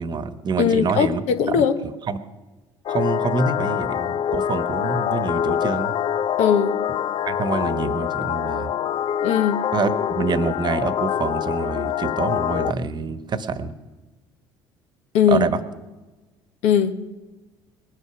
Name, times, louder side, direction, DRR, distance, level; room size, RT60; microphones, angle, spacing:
voice 1, 0.0-1.2 1.5-2.2 2.9-6.0 7.3-8.7 9.7-13.7 15.3-15.6, right 5 dB, 40° right, 11 dB, 1.2 m, -26 dB
voice 2, 0.6-1.8 6.4-6.8 9.2-9.6 15.1-15.5 16.6-17.0, left 8 dB, 70° left, 8 dB, 1.1 m, -19 dB
sound 1, 2.9-12.7, left 10 dB, 50° left, 0.4 m, -25 dB
20.0 x 8.4 x 6.0 m, 1.2 s
hypercardioid pair, 70°, 12 cm